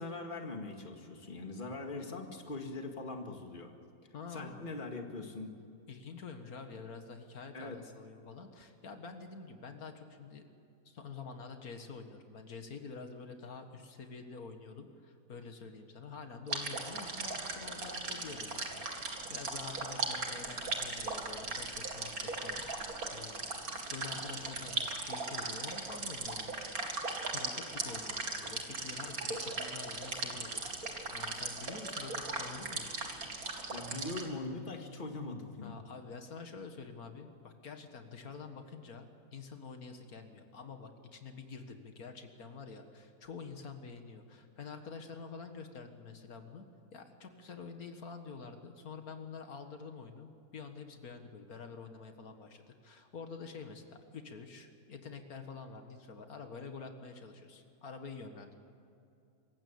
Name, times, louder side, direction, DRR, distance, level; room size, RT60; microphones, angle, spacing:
voice 1, 0.0-3.7 4.3-5.5 7.5-7.8 33.7-35.8, left 2 dB, 35° left, 4 dB, 2.1 m, -41 dB
voice 2, 4.1-4.7 5.9-10.4 10.9-26.5 27.3-33.0 35.6-46.7 46.9-58.6, left 4 dB, 85° left, 6 dB, 2.1 m, -47 dB
sound 1, 16.5-34.2, right 3 dB, 85° right, 2.8 m, -38 dB
26.0 x 16.0 x 8.7 m, 2.6 s
omnidirectional pair, 1.5 m